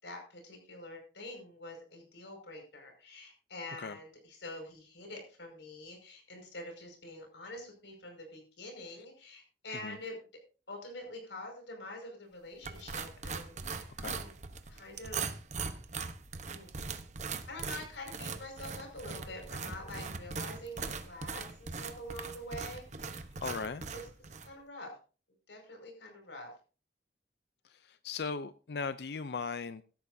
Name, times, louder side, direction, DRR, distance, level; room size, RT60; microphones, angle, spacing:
voice 1, 0.0-10.2 10.7-14.3 14.7-15.4 16.5-16.8 17.3-24.0 24.4-25.0 25.5-26.5, left 1 dB, 80° left, 3 dB, 5.6 m, -46 dB
sound 1, 12.6-24.5, right 5 dB, 40° right, 0.9 m, -40 dB
voice 2, 23.4-23.8 27.6-29.8, left 5 dB, 60° left, 13 dB, 0.5 m, -38 dB
16.5 x 12.5 x 2.7 m, 0.36 s
head